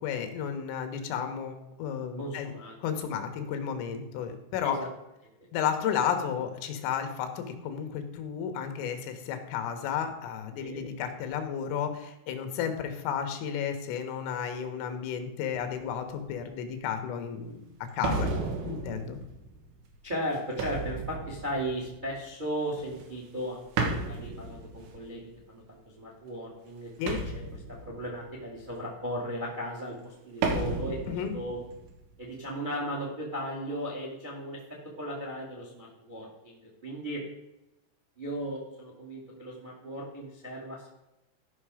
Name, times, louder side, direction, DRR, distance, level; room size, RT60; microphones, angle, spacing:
voice 1, 0.0-2.5 2.8-4.8 5.5-17.6 17.9-18.3 18.6-19.2 27.0-27.2 31.1-31.3, left 8 dB, 90° left, 7 dB, 3.8 m, -32 dB
voice 2, 2.2-2.7 4.6-4.9 10.6-10.8 14.7-15.0 20.0-25.2 25.5-27.4 27.7-31.6 32.2-34.6 35.0-37.2 38.2-40.9, equal, 40° right, -2 dB, 0.6 m, -36 dB
sound 1, 15.5-16.1 16.8-16.9 18.0-22.3 22.8-23.4 23.8-25.3 27.1-28.7 30.4-32.5, right 3 dB, 70° right, 3.5 m, -34 dB
13.5 x 5.7 x 4.9 m, 0.94 s
omnidirectional pair, 5.6 m